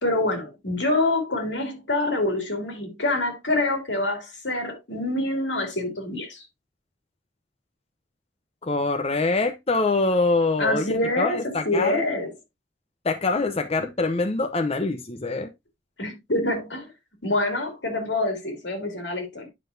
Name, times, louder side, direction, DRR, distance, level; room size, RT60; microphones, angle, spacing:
voice 1, 0.0-6.5 10.6-12.3 16.0-16.9 17.2-19.5, left 2 dB, 85° left, 2.6 m, -26 dB
voice 2, 8.6-12.0 13.0-15.5, left 3 dB, 35° left, 0.8 m, -24 dB
9.8 x 5.7 x 2.6 m
head